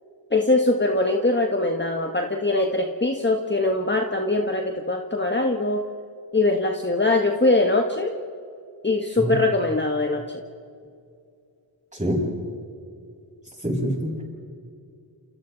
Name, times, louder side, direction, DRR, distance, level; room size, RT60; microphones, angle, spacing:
voice 1, 0.3-5.9 6.3-8.2 8.8-10.4, left 2 dB, 20° left, 3 dB, 1.5 m, -22 dB
voice 2, 13.6-14.2, equal, 15° right, -2 dB, 7.9 m, -25 dB
29.5 x 29.5 x 4.1 m, 2.5 s
wide cardioid pair, 70°, 48 cm